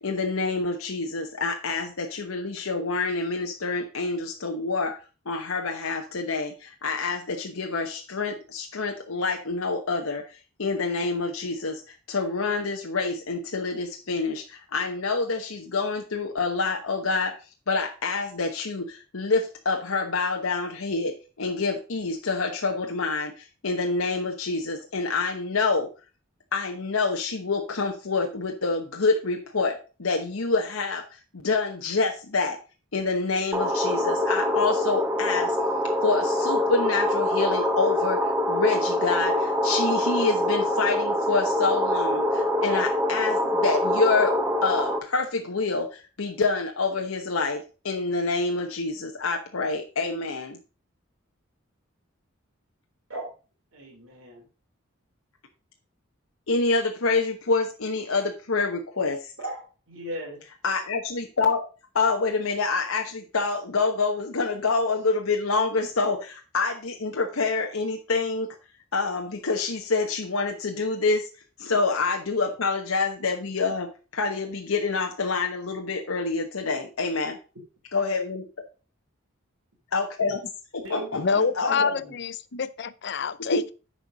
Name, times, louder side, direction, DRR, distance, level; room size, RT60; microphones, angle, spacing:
voice 1, 0.0-4.9 5.3-10.2 10.6-17.3 17.7-25.9 26.5-32.6 32.9-35.6 36.0-50.6 56.5-59.3 60.6-61.6 61.9-68.5 68.9-71.3 71.6-77.4 77.9-78.4 79.9-80.4 80.7-81.9 82.5-82.6 83.5-83.7, left 3 dB, 90° left, 1.1 m, -27 dB
sound 1, 33.5-45.0, left 1 dB, 10° right, 0.9 m, -24 dB
voice 2, 53.7-54.4 59.4-60.4 80.8-82.1, right 1 dB, 75° right, 3.2 m, -38 dB
voice 3, 81.1-83.7, left 5 dB, 55° left, 0.5 m, -27 dB
10.0 x 4.5 x 5.1 m
head